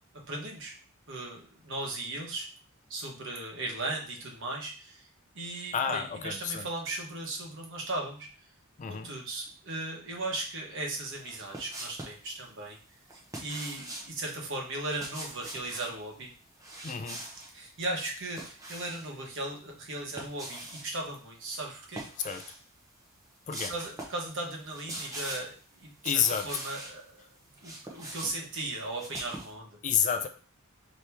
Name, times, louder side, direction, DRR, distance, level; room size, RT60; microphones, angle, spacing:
voice 1, 0.3-0.7 1.1-2.5 2.9-5.1 5.3-8.3 8.9-12.8 13.1-16.3 17.5-22.0 23.7-27.3 27.6-29.8, right 2 dB, 55° right, 0 dB, 1.1 m, -37 dB
voice 2, 5.7-6.7 8.8-9.1 16.8-17.2 22.2-22.4 23.5-23.7 26.0-26.5 29.8-30.3, left 7 dB, 35° left, 8 dB, 0.3 m, -29 dB
sound 1, 11.2-12.2 13.1-14.1 14.8-15.9 16.6-17.5 18.0-19.1 19.9-20.9 21.9-22.6 23.0-23.1 23.5-24.2 24.5-25.6 26.0-26.9 27.4-29.5, right 1 dB, 15° right, 0.8 m, -42 dB
4.4 x 3.0 x 3.4 m, 0.39 s
head